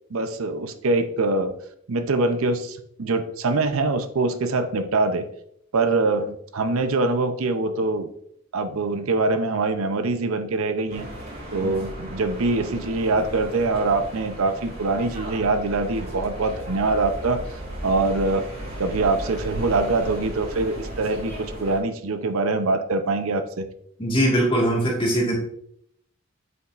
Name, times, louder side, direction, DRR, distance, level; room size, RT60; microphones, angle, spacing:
voice 1, 0.1-1.5 1.9-5.3 5.7-8.1 8.5-11.1 11.5-18.5 18.8-23.7, right 3 dB, 80° right, 9 dB, 0.6 m, -24 dB
sound 1, 10.9-21.8, right 1 dB, 45° right, 2.1 m, -36 dB
voice 2, 24.0-25.3, right 1 dB, 25° left, -3 dB, 1.7 m, -21 dB
8.0 x 5.4 x 2.5 m, 0.70 s
head